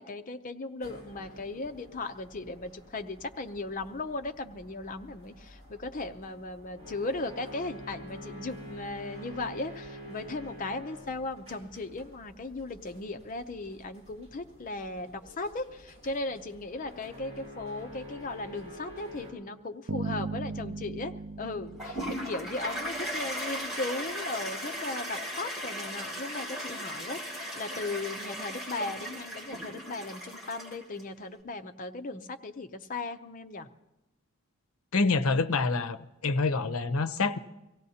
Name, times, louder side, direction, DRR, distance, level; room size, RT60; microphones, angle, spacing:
voice 1, 0.0-33.7, left 2 dB, 40° left, 8 dB, 0.6 m, -37 dB
sound 1, 0.8-19.3, equal, 30° right, 5.4 m, -48 dB
Bass guitar, 19.9-23.0, right 3 dB, 70° right, 0.6 m, -37 dB
Toilet flush, 21.8-31.0, equal, ahead, 3.3 m, -37 dB
voice 2, 34.9-36.0 36.2-37.4, left 3 dB, 80° left, 12 dB, 0.6 m, -26 dB
24.5 x 16.5 x 2.8 m, 1.0 s
head